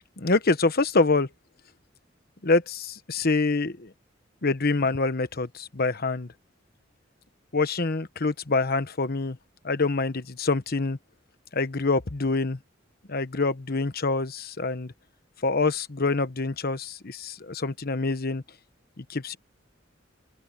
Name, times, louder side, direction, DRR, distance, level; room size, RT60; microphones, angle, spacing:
voice 1, 0.2-1.3 2.4-3.9 4.4-6.3 7.5-9.4 9.6-11.0 11.5-12.6 13.1-14.9 15.4-18.4 19.0-19.4, left 3 dB, 55° left, 1.1 m, -26 dB
open air
head